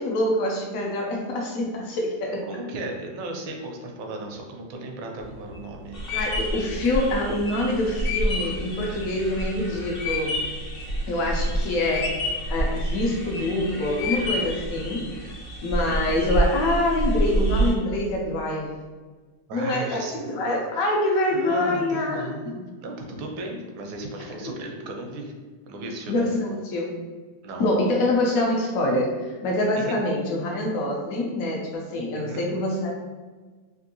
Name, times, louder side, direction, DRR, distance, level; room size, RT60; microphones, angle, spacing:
voice 1, 0.0-2.5 6.1-10.4 11.1-12.2 12.5-15.1 15.6-18.7 19.5-22.6 24.4-24.5 26.1-27.0 27.6-32.9, left 1 dB, 85° left, -1 dB, 0.7 m, -25 dB
voice 2, 2.5-6.0 15.8-16.0 19.5-20.3 21.3-22.5 22.8-25.3 25.7-26.2 27.4-27.7 29.8-29.9 32.1-32.4, right 2 dB, 85° right, 2 dB, 1.4 m, -35 dB
sound 1, 5.2-10.6 11.1-11.6 11.9-12.6 13.1-13.6 14.0-14.7, left 4 dB, 70° left, 1.3 m, -30 dB
sound 2, 5.9-17.7, right 1 dB, 40° left, 0.6 m, -29 dB
3.5 x 2.5 x 2.6 m, 1.4 s
omnidirectional pair, 2.1 m